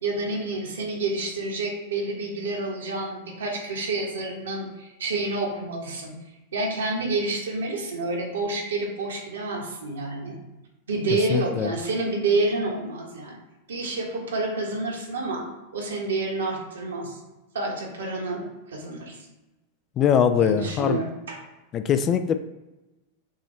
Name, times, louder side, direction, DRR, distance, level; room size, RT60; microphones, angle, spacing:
voice 1, 0.0-6.2 6.5-10.4 10.9-13.4 13.7-15.5 15.7-17.2 17.5-19.2 20.4-21.4, right 2 dB, 65° right, -1 dB, 1.2 m, -28 dB
voice 2, 11.3-11.7 20.0-21.0 21.7-22.3, left 8 dB, 30° left, 9 dB, 0.3 m, -22 dB
6.2 x 2.6 x 3.2 m, 1.0 s
figure-of-eight pair, 90°, 0 cm